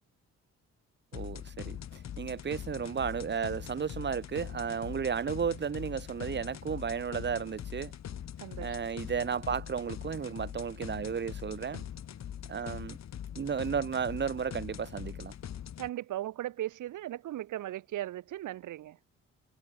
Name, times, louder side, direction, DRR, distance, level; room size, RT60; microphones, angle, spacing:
sound 1, 1.1-15.9, left 10 dB, 60° left, 3.5 m, -42 dB
voice 1, 1.1-1.8 2.2-7.9 8.6-11.8 12.5-13.0 13.3-15.3, right 7 dB, 35° right, 1.2 m, -33 dB
voice 2, 8.4-8.7 15.8-19.0, right 13 dB, 80° right, 4.2 m, -37 dB
cardioid pair, 90°, 30 cm